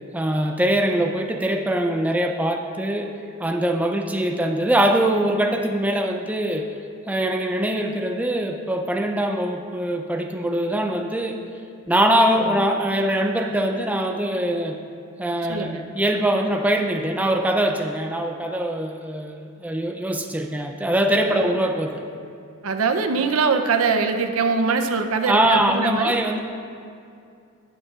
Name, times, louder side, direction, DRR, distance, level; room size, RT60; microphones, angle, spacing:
voice 1, 0.1-3.1 3.4-6.7 7.1-11.4 11.9-14.8 15.2-22.0 25.3-26.4, right 1 dB, 5° right, 3 dB, 0.4 m, -22 dB
voice 2, 15.5-15.9 21.3-21.5 22.6-26.2, right 4 dB, 70° right, 6 dB, 0.6 m, -22 dB
18.0 x 6.4 x 2.4 m, 2.4 s
head